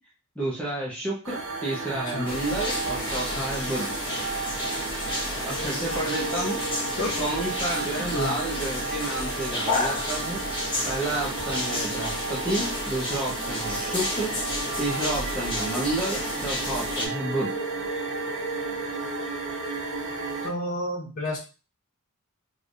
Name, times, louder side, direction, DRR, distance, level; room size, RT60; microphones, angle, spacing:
voice 1, 0.4-3.9 5.4-6.6 7.2-10.4 10.8-14.3 14.8-17.5, right 2 dB, 5° left, -5 dB, 0.9 m, -30 dB
sound 1, 1.2-20.5, right 3 dB, 85° right, 1.4 m, -33 dB
voice 2, 1.9-2.3 7.0-7.2 8.0-8.4 20.4-21.4, left 1 dB, 40° left, -5 dB, 1.3 m, -30 dB
sound 2, 2.3-17.1, left 1 dB, 25° left, 1.2 m, -31 dB
3.4 x 3.3 x 2.6 m, 0.32 s
head